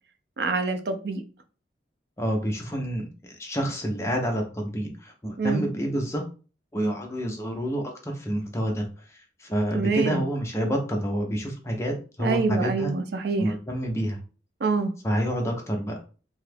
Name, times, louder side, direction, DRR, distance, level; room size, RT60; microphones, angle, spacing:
voice 1, 0.4-1.2 5.4-5.6 9.7-10.2 12.2-13.5 14.6-14.9, right 4 dB, 70° right, 0.4 m, -26 dB
voice 2, 2.2-6.2 6.7-12.9 13.4-14.2 15.0-16.0, equal, 15° left, 0.6 m, -28 dB
2.8 x 2.3 x 3.3 m
head